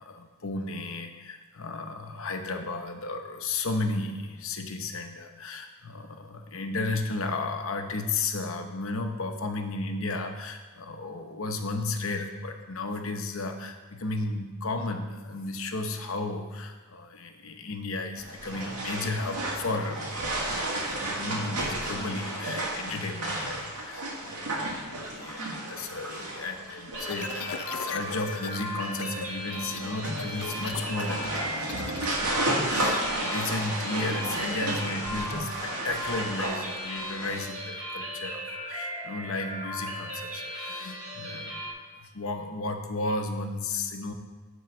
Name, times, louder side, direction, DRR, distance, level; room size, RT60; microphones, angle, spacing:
voice 1, 0.0-41.6 42.0-44.1, left 3 dB, 65° left, 5 dB, 0.8 m, -34 dB
sound 1, 18.2-37.4, right 1 dB, 90° right, 1.8 m, -33 dB
sound 2, 26.9-41.7, equal, 60° right, 2.4 m, -37 dB
sound 3, 27.1-28.6 28.9-29.3 29.5-32.1, left 7 dB, 85° left, 0.5 m, -39 dB
10.5 x 3.9 x 6.1 m, 1.3 s
head